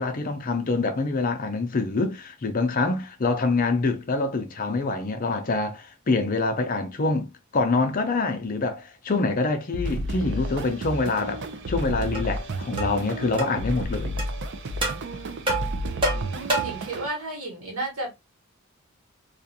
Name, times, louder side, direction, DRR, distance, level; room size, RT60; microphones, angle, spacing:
voice 1, 0.0-14.2 16.6-16.7, left 3 dB, 40° left, 0.5 m, -26 dB
sound 1, 9.7-17.1, right 1 dB, 55° right, 0.4 m, -32 dB
sound 2, 12.1-12.2 12.8-13.0 13.4-13.5 14.2-14.3 14.8-15.0 15.5-16.9, right 2 dB, 25° right, 0.8 m, -27 dB
voice 2, 15.5-18.1, right 2 dB, 90° right, 1.3 m, -34 dB
2.4 x 2.4 x 2.7 m
head